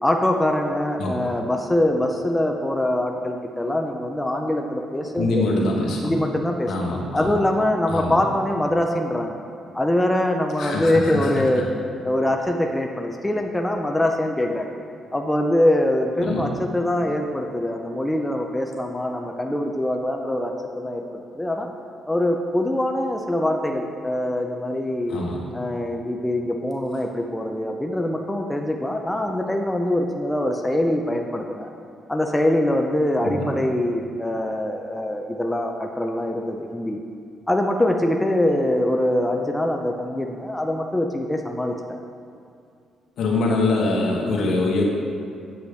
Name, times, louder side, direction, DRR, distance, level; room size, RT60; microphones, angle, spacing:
voice 1, 0.0-5.5 6.0-6.7 7.1-9.4 9.7-11.7 12.0-14.7 15.1-21.7 22.1-25.2 25.5-31.7 32.1-37.0 37.5-41.8, left 1 dB, 10° left, 2 dB, 0.6 m, -23 dB
voice 2, 5.2-6.2 6.7-7.3 7.9-8.2 10.6-11.5 16.2-16.4 25.1-25.4 33.2-33.5 43.2-44.8, left 2 dB, 70° left, -2 dB, 1.5 m, -24 dB
8.1 x 7.6 x 3.4 m, 2.4 s
cardioid pair, 90°, 0 cm